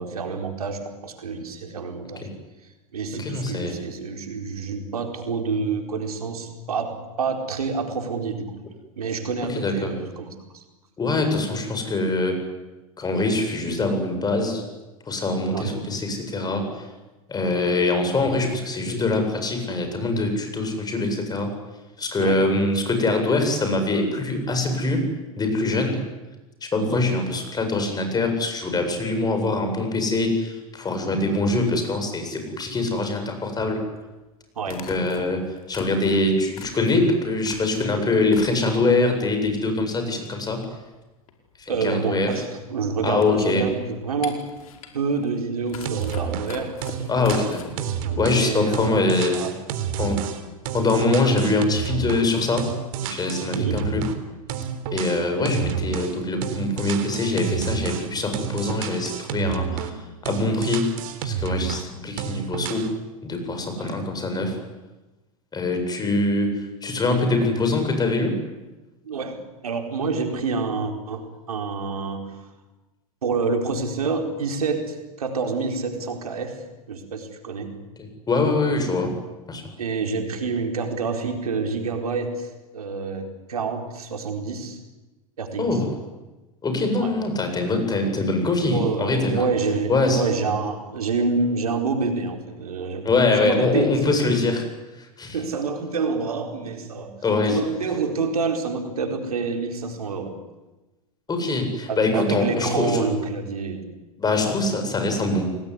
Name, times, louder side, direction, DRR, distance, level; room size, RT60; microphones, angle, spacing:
voice 1, 0.0-2.3 2.6-8.6 9.0-10.6 15.5-15.7 22.2-22.4 26.8-27.0 34.6-34.8 41.7-44.5 44.9-46.8 47.9-49.6 53.6-53.8 55.4-55.7 63.8-64.0 66.0-66.1 69.0-72.5 73.2-77.8 79.8-84.8 85.4-85.8 87.0-87.2 88.7-94.1 95.3-97.2 97.5-100.4 101.9-104.0, right 4 dB, 90° right, 4 dB, 4.5 m, -28 dB
voice 2, 3.2-3.7 9.5-9.9 11.0-12.4 13.0-14.6 15.1-16.9 17.3-21.5 22.0-25.1 25.4-26.0 26.6-33.8 34.7-35.4 35.7-40.6 41.6-42.3 43.0-43.6 47.1-47.8 48.2-49.4 50.0-50.2 50.7-52.7 53.0-54.0 54.9-60.0 60.2-60.9 61.2-62.9 63.2-64.6 65.5-68.4 78.3-79.1 79.5-79.6 85.6-85.9 86.6-89.5 89.9-90.2 93.0-94.6 95.0-95.4 97.2-97.6 101.3-103.0 104.2-105.5, left 2 dB, 20° left, 6 dB, 7.8 m, -23 dB
sound 1, 31.8-31.9 33.7-33.8 34.7-38.0 38.2-39.0 39.4-40.1 40.3-40.4 40.6-47.7, left 7 dB, 75° left, 5.2 m, -40 dB
sound 2, 45.9-46.5 46.8-52.3 52.6-54.2 54.5-56.2 56.4-60.0 60.3-61.9 62.2-62.9, right 8 dB, 60° right, 3.7 m, -30 dB
29.5 x 19.5 x 9.9 m, 1.1 s
hypercardioid pair, 100°, 19 cm